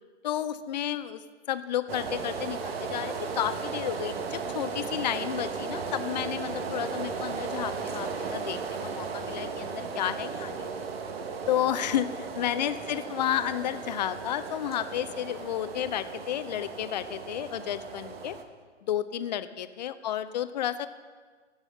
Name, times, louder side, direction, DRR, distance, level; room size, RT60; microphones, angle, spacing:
voice 1, 0.2-1.2 1.5-10.7 11.5-18.4 18.8-20.9, left 11 dB, 35° left, 13 dB, 0.5 m, -31 dB
sound 1, 1.9-18.4, right 5 dB, 55° right, 1.2 m, -36 dB
16.5 x 6.3 x 6.3 m, 1.5 s
figure-of-eight pair, 125°, 36 cm